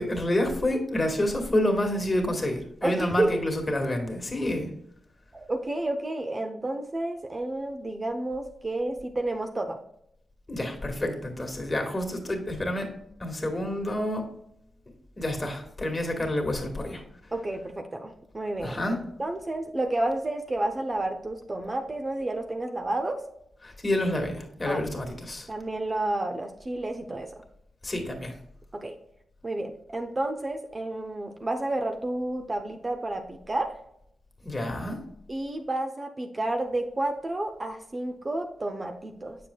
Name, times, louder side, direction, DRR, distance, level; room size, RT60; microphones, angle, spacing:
voice 1, 0.0-4.7 10.5-12.9 13.2-14.3 15.2-17.0 18.6-19.0 23.6-25.5 27.8-28.4 34.4-35.0, left 1 dB, 30° left, 3 dB, 1.8 m, -28 dB
voice 2, 2.8-3.4 5.3-9.8 17.3-23.2 24.7-24.8 25.5-27.3 28.7-29.0 29.4-33.7 35.3-39.4, right 2 dB, 35° right, 5 dB, 0.8 m, -30 dB
7.3 x 6.5 x 2.3 m, 0.75 s
cardioid pair, 50°, 0 cm